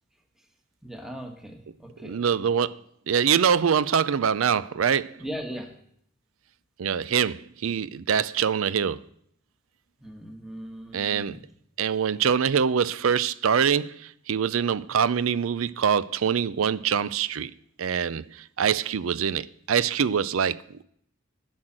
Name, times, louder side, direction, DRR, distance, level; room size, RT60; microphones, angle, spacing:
voice 1, 0.8-2.4 5.2-5.7 10.0-11.4, equal, ahead, 1.1 m, -39 dB
voice 2, 2.0-2.8 3.1-5.2 6.8-9.0 10.9-11.4 11.8-17.5 17.8-20.8, right 7 dB, 90° right, 0.5 m, -24 dB
11.5 x 6.3 x 8.7 m
head